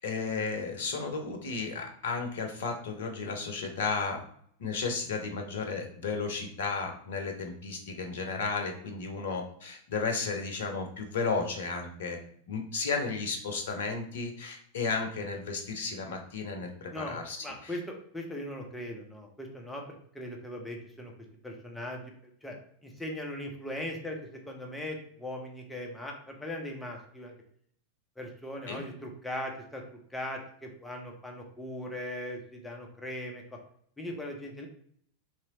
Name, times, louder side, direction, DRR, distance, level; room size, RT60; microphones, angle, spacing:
voice 1, 0.0-4.2 4.6-12.2 12.5-17.8 28.7-28.8, left 4 dB, 60° left, 4 dB, 0.7 m, -33 dB
voice 2, 16.9-21.1 21.4-22.0 22.4-22.6 22.8-24.2 24.5-27.3 28.2-33.6 34.0-34.7, left 1 dB, 5° left, 1 dB, 0.7 m, -39 dB
3.1 x 2.9 x 2.9 m, 0.64 s
figure-of-eight pair, 90°, 0 cm